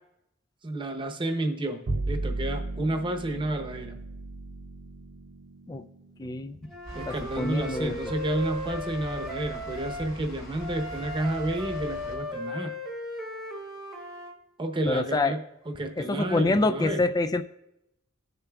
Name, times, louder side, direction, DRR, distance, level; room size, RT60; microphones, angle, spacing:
voice 1, 0.6-4.0 6.9-12.7 14.6-15.4 15.7-17.0, right 1 dB, 25° right, 4 dB, 0.8 m, -31 dB
Bowed string instrument, 1.9-8.3, right 2 dB, 75° right, 0.6 m, -36 dB
voice 2, 6.2-6.6 7.1-8.0 14.9-15.4 16.0-17.4, left 2 dB, 20° left, 11 dB, 0.3 m, -26 dB
Wind instrument woodwind instrument, 6.7-10.1 10.6-14.3, left 1 dB, ahead, 1.1 m, -36 dB
sound 1, 6.9-12.2, equal, 85° left, 2.8 m, -43 dB
19.0 x 6.8 x 2.3 m, 0.90 s
head